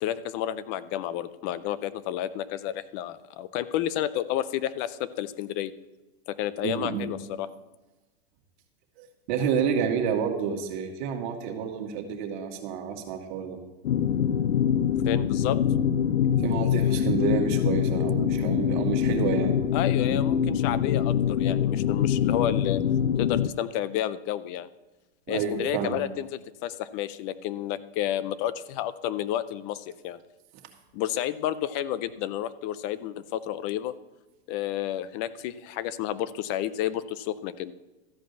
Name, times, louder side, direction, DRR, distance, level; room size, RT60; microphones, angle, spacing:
voice 1, 0.0-5.7 6.3-7.5 15.0-15.6 19.7-22.8 23.2-24.7 25.3-30.2 30.9-33.9 34.5-37.7, left 12 dB, 30° left, 16 dB, 0.4 m, -31 dB
voice 2, 6.6-7.2 9.0-13.6 16.4-19.6 25.3-26.0, right 7 dB, 50° right, 3 dB, 2.0 m, -29 dB
sound 1, 13.8-23.5, left 9 dB, 85° left, 0.7 m, -24 dB
13.5 x 5.1 x 8.1 m, 1.1 s
supercardioid pair, 150°, 32 cm